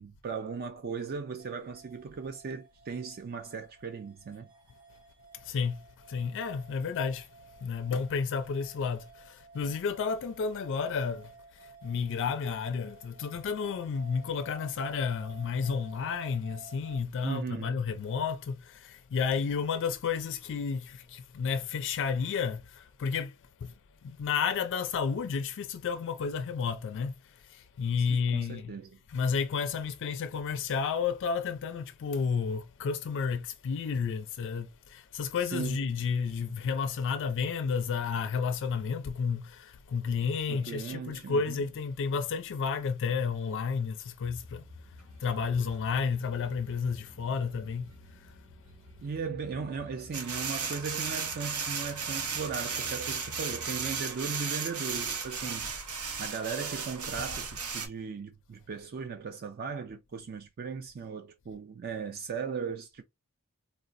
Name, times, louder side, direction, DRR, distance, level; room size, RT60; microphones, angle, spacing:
voice 1, 0.0-4.5 17.2-17.8 28.1-29.0 35.5-35.9 40.5-41.6 49.0-55.7 56.2-63.0, right 5 dB, 45° right, 0.4 m, -37 dB
sound 1, 1.4-17.0, right 4 dB, 20° right, 1.0 m, -54 dB
voice 2, 5.3-7.3 7.6-23.4 23.6-23.7 24.0-28.8 29.1-44.6 45.2-48.3, left 5 dB, 60° left, 0.4 m, -31 dB
sound 2, 44.2-54.0, left 2 dB, 65° right, 1.5 m, -51 dB
sound 3, 50.1-57.9, right 5 dB, 85° right, 0.8 m, -35 dB
4.0 x 2.0 x 2.5 m
head